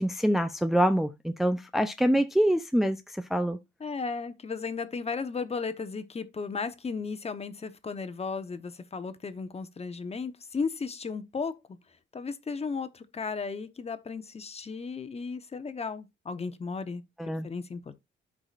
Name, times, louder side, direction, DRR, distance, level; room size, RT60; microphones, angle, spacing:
voice 1, 0.0-3.6 17.2-17.5, equal, ahead, 0.5 m, -25 dB
voice 2, 3.8-11.6 12.1-18.0, left 4 dB, 30° left, 1.0 m, -35 dB
13.0 x 5.0 x 2.5 m
cardioid pair, 90°, 20 cm